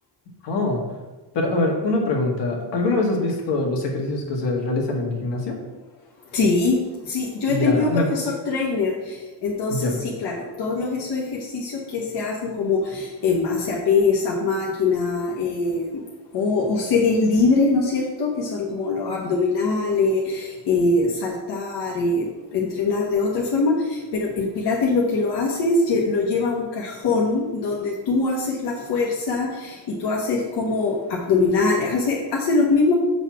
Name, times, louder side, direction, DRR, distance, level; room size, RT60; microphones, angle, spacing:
voice 1, 0.4-0.8 1.3-5.6 7.5-8.1 9.7-10.0, left 2 dB, 80° left, 1 dB, 1.8 m, -23 dB
voice 2, 6.3-16.0 16.3-32.9, left 3 dB, 65° left, -2 dB, 1.1 m, -23 dB
7.2 x 4.1 x 5.9 m, 1.2 s
cardioid pair, 170°, 42 cm